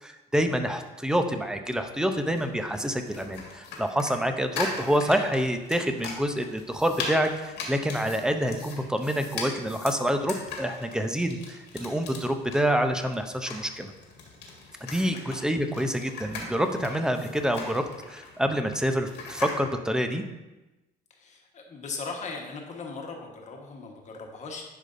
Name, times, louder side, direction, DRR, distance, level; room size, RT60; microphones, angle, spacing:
voice 1, 0.0-13.9 14.8-20.2, equal, 5° right, 6 dB, 0.6 m, -27 dB
sound 1, 2.1-19.6, left 4 dB, 85° left, 1.6 m, -40 dB
voice 2, 21.2-24.6, left 4 dB, 45° left, 1 dB, 1.3 m, -38 dB
10.5 x 5.0 x 2.6 m, 1.0 s
cardioid pair, 110°, 17 cm